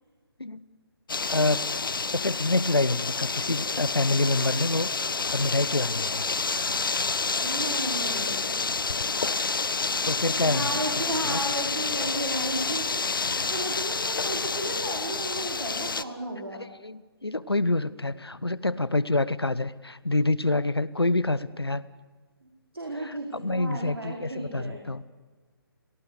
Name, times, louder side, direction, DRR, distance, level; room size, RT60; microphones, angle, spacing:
sound 1, 1.1-16.0, left 4 dB, 60° left, 1.0 m, -29 dB
voice 1, 1.3-1.7 2.1-4.9 5.3-6.3 10.1-10.8 11.2-11.4 13.3-13.4 16.5-21.8 22.9-25.0, left 2 dB, 80° left, 17 dB, 1.2 m, -27 dB
voice 2, 7.3-8.6 10.4-12.9 13.2-16.6 22.7-24.8, right 1 dB, 70° right, 0 dB, 4.5 m, -34 dB
27.0 x 19.0 x 6.7 m, 1.4 s
figure-of-eight pair, 145°, 13 cm